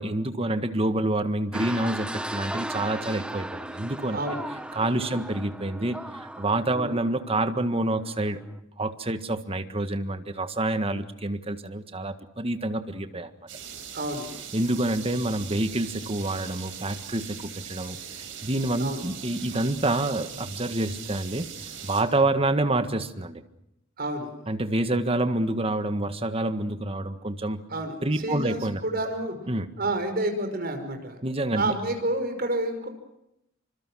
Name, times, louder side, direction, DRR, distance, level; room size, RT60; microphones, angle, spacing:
voice 1, 0.0-4.2 4.7-8.4 8.8-13.3 14.5-23.4 24.5-27.6 28.0-28.8 29.5-29.7 31.2-31.8, right 2 dB, 30° right, 9 dB, 1.7 m, -27 dB
sound 1, 1.5-8.6, right 1 dB, 5° right, 1.2 m, -37 dB
voice 2, 4.1-4.5 4.9-5.2 6.7-7.0 13.9-14.3 18.8-19.0 24.0-24.3 27.7-29.4 29.8-31.2 31.5-32.9, right 1 dB, 50° right, 7 dB, 5.5 m, -29 dB
sound 2, 13.5-22.0, right 8 dB, 70° right, 6.8 m, -40 dB
28.0 x 25.5 x 6.4 m, 0.82 s
head